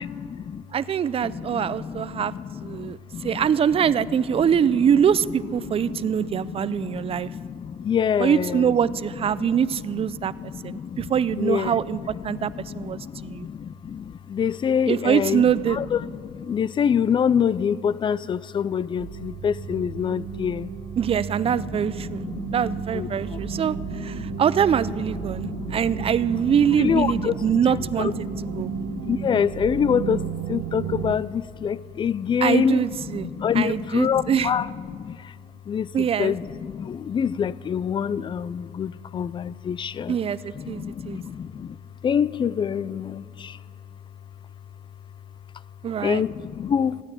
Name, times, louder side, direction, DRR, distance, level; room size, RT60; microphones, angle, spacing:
voice 1, 0.0-0.6 1.2-3.5 4.1-4.5 5.8-8.7 9.3-11.1 11.4-20.7 21.5-24.4 25.1-26.1 26.5-32.9 33.1-35.3 35.7-40.2 40.6-41.8 42.0-43.6 46.0-47.0, left 7 dB, 30° left, 20 dB, 0.3 m, -27 dB
voice 2, 0.7-2.3 2.6-7.3 8.2-10.3 10.6-12.0 12.2-13.5 14.9-15.8 21.0-22.2 22.5-28.3 28.5-28.7 32.4-34.5 35.9-36.4 40.1-41.2 45.8-46.2, right 8 dB, 35° right, 17 dB, 0.4 m, -24 dB
sound 1, 19.0-31.2, right 7 dB, 65° right, 0.7 m, -33 dB
15.0 x 9.6 x 9.0 m, 2.3 s
cardioid pair, 110°, 17 cm